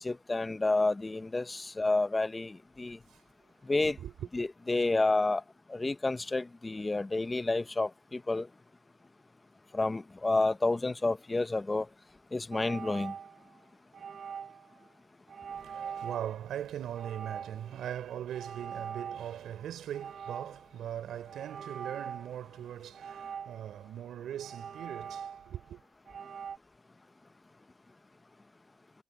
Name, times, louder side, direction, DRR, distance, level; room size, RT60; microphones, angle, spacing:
voice 1, 0.0-3.0 3.7-4.0 4.3-5.4 5.7-8.5 9.7-11.9 12.3-13.1, left 2 dB, 20° left, 0.9 m, -30 dB
voice 2, 3.8-4.3 15.5-25.8, right 10 dB, 70° right, 4.9 m, -40 dB
sound 1, 12.5-13.5 13.9-14.7 15.3-16.3 16.9-17.8 18.3-19.6 19.9-20.7 21.3-22.4 22.9-23.8 24.4-25.7 26.1-26.6, right 7 dB, 55° right, 6.2 m, -43 dB
cardioid pair, 90°, 0 cm